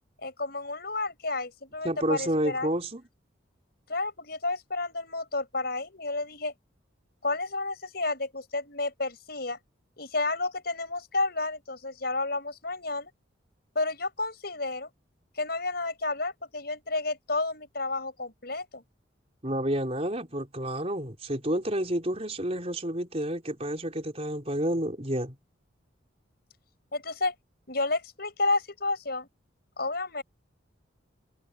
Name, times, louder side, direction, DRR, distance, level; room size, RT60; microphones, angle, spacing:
voice 1, 0.2-2.7 3.9-6.5 7.2-9.6 10.0-13.1 13.8-14.9 15.4-18.8 26.9-27.3 27.7-29.3 29.8-30.2, left 2 dB, 50° left, 6.9 m, -31 dB
voice 2, 1.8-3.0 19.4-25.4, right 1 dB, 30° right, 5.1 m, -30 dB
head